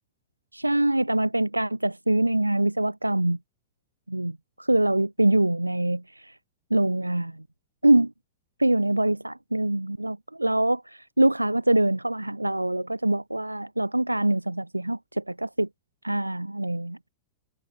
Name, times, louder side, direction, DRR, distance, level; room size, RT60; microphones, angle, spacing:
voice 1, 0.5-3.4 4.1-6.3 6.7-7.3 7.8-8.1 8.6-15.7 16.0-17.0, right 1 dB, 85° right, 1.3 m, -24 dB
figure-of-eight pair, 90°, 0 cm